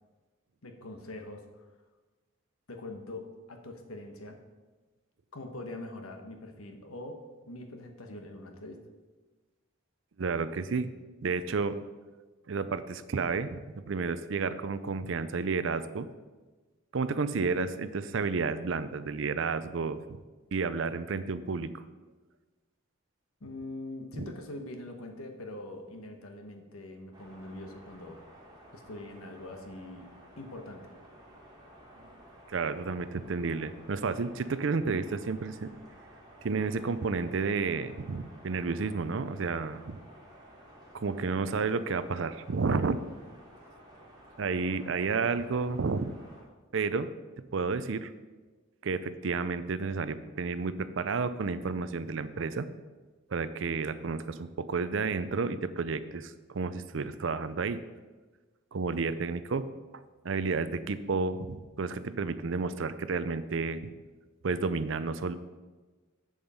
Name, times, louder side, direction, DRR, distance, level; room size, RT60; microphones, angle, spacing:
voice 1, 0.6-1.7 2.7-4.4 5.3-7.2 7.5-8.8 23.4-28.2 28.7-30.1 30.4-30.9 44.9-45.0, left 2 dB, 85° left, 5 dB, 1.2 m, -43 dB
voice 2, 10.2-10.9 11.2-11.8 12.5-16.1 16.9-20.0 20.5-21.7 24.1-24.3 32.5-35.7 36.4-40.0 40.9-43.0 44.4-46.2 46.7-47.1 47.5-48.1 48.8-52.7 53.3-57.8 58.7-59.7 59.9-63.8 64.4-65.4, right 4 dB, 60° right, 13 dB, 0.5 m, -31 dB
sound 1, 27.1-46.4, equal, 20° right, 1.8 m, -54 dB
7.9 x 7.1 x 5.5 m, 1.3 s
head